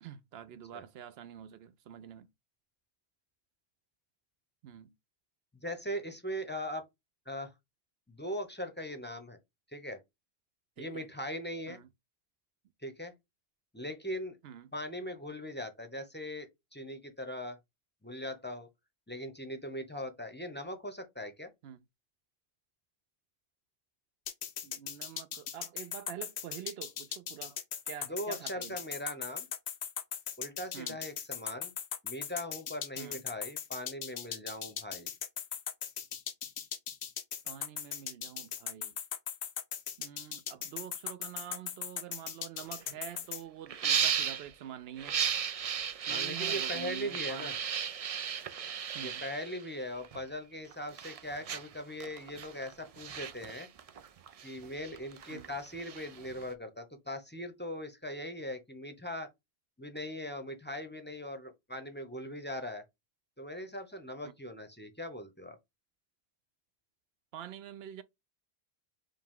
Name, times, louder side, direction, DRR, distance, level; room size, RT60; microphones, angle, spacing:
voice 1, 0.0-2.3 4.6-4.9 10.8-11.1 11.7-11.9 14.4-14.7 21.6-21.8 24.6-27.6 27.9-28.8 30.7-31.0 33.0-33.2 37.4-38.9 40.0-45.2 46.0-47.6 48.9-49.2 55.3-55.5 64.2-64.3 67.3-68.0, right 10 dB, 75° right, 0.8 m, -46 dB
voice 2, 5.6-6.8 7.3-7.5 8.1-9.4 9.7-10.0 10.8-11.8 12.8-13.1 13.7-14.4 14.7-17.6 18.0-18.7 19.1-21.5 28.1-29.5 30.4-31.7 32.0-35.1 46.1-47.6 49.0-53.7 54.4-59.3 59.8-62.8 63.4-65.6, equal, 10° left, 0.6 m, -40 dB
sound 1, 24.3-43.4, left 8 dB, 90° left, 1.0 m, -38 dB
sound 2, 42.6-42.7 42.9-43.2 43.7-44.5 45.0-50.2 50.7-56.5, right 8 dB, 55° right, 0.4 m, -35 dB
5.2 x 2.2 x 3.6 m
omnidirectional pair, 1.1 m